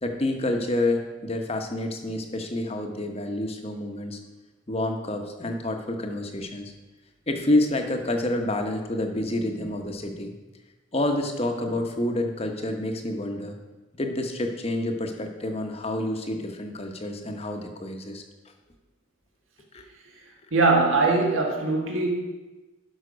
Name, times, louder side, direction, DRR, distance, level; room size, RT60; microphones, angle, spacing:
voice 1, 0.0-4.2 4.7-6.7 7.3-10.3 10.9-13.6 13.9-18.2 19.7-19.8, left 1 dB, 30° left, 4 dB, 0.9 m, -28 dB
voice 2, 20.5-22.1, right 3 dB, 75° right, 1 dB, 1.8 m, -21 dB
11.5 x 5.8 x 5.1 m, 1.1 s
head